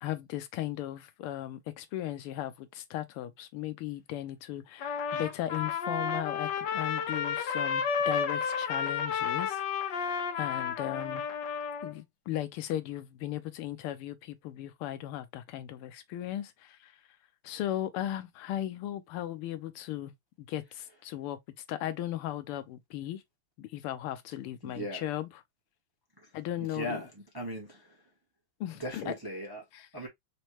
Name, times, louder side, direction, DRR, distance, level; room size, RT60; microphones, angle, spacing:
voice 1, 0.0-11.2 11.8-16.9 17.4-21.4 21.7-23.2 23.6-25.3 26.3-27.0 28.6-29.1 29.7-29.9, left 12 dB, 90° left, 1.6 m, -37 dB
Trumpet, 4.8-11.9, left 6 dB, 65° left, 1.3 m, -32 dB
voice 2, 24.6-25.0 26.2-26.3 26.6-28.0 28.8-29.6 29.9-30.1, equal, 20° right, 0.7 m, -38 dB
4.3 x 3.1 x 2.9 m
omnidirectional pair, 2.4 m